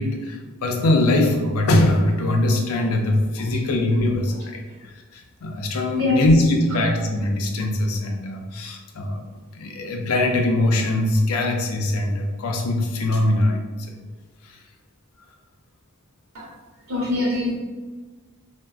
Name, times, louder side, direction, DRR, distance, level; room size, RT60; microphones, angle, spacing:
voice 1, 0.0-9.3 9.5-13.6 14.4-14.6, left 1 dB, 80° left, 2 dB, 0.4 m, -22 dB
voice 2, 16.9-17.5, left 2 dB, 70° right, -6 dB, 0.8 m, -24 dB
3.5 x 2.1 x 2.3 m, 1.3 s
head